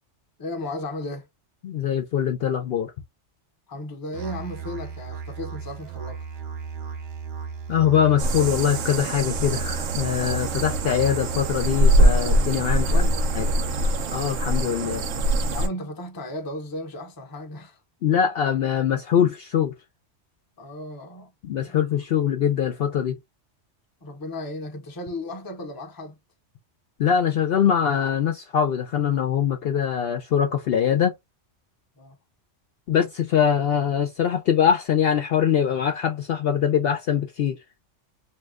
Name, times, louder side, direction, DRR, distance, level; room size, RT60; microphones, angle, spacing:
voice 1, 0.4-1.3 3.7-6.2 12.8-13.3 15.5-17.8 20.6-21.3 21.6-21.8 24.0-26.2 30.9-31.0 32.0-32.2, left 1 dB, 25° left, 0.6 m, -35 dB
voice 2, 1.6-2.9 7.7-13.0 13.4-13.5 14.1-15.1 18.0-19.7 21.4-23.2 27.0-31.1 32.9-37.6, left 8 dB, 65° left, 0.7 m, -23 dB
Musical instrument, 4.1-14.1, right 6 dB, 60° right, 0.8 m, -35 dB
sound 1, 8.2-15.7, right 1 dB, 85° right, 1.0 m, -23 dB
2.8 x 2.2 x 3.5 m
omnidirectional pair, 1.3 m